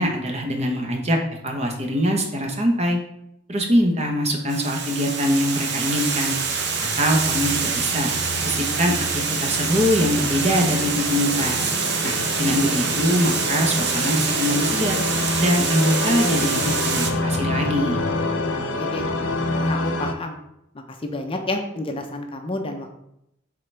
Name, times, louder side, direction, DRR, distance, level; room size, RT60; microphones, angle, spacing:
voice 1, 0.0-3.0 3.5-6.3 7.0-8.1 8.4-11.7 12.0-15.0 15.4-18.0, equal, 35° right, 2 dB, 0.9 m, -23 dB
Water, 4.5-17.1, right 5 dB, 60° right, 0.7 m, -26 dB
sound 1, 5.8-20.1, left 2 dB, 85° left, 0.6 m, -28 dB
voice 2, 18.5-19.0 19.5-20.4 21.0-22.9, left 2 dB, 30° left, 4 dB, 0.6 m, -30 dB
7.6 x 3.8 x 3.3 m, 0.81 s
head